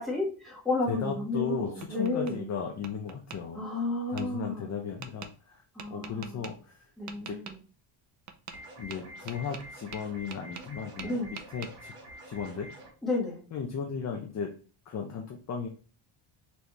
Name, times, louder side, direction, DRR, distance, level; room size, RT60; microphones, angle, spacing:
voice 1, 0.0-2.5 3.5-4.7 5.7-6.5 7.0-7.6 11.0-11.3 13.0-13.4, left 2 dB, ahead, -6 dB, 1.5 m, -32 dB
voice 2, 0.9-3.7 4.1-5.6 5.9-6.9 7.2-7.4 8.8-11.9 12.3-12.7 13.5-14.5 14.9-15.7, left 6 dB, 35° left, 2 dB, 0.6 m, -36 dB
Tap, 1.3-2.4 2.8-3.4 4.2-4.3 5.0-5.3 5.8-6.5 7.1-7.6 8.3-8.6 8.9-10.7 11.0-11.7, right 7 dB, 40° right, 0.4 m, -44 dB
sound 1, 8.5-12.9, equal, 85° right, 2.1 m, -47 dB
4.2 x 3.3 x 3.0 m, 0.38 s
cardioid pair, 145°, 49 cm